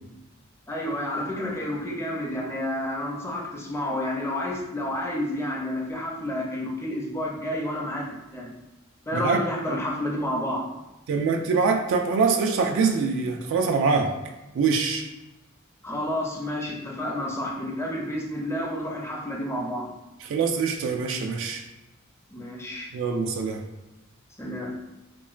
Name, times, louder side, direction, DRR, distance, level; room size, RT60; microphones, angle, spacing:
voice 1, 0.7-8.5 9.1-10.7 15.8-19.9 22.3-22.9 24.4-24.7, left 1 dB, 10° left, -1 dB, 0.4 m, -30 dB
voice 2, 11.1-14.2 14.6-15.0 20.3-21.6 22.9-23.6, right 5 dB, 60° right, 3 dB, 0.3 m, -24 dB
3.0 x 2.1 x 2.3 m, 1.0 s
head